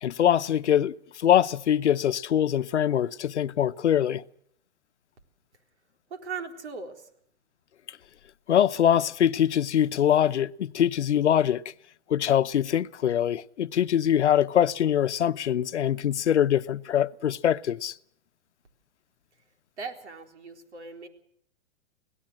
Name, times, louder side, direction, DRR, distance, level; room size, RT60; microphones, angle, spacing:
voice 1, 0.0-4.2 8.5-11.6 12.1-17.9, left 10 dB, 90° left, 0.9 m, -23 dB
voice 2, 6.1-7.0 19.8-21.1, right 5 dB, 85° right, 4.1 m, -38 dB
26.0 x 17.5 x 6.3 m
hypercardioid pair, 140°, 33 cm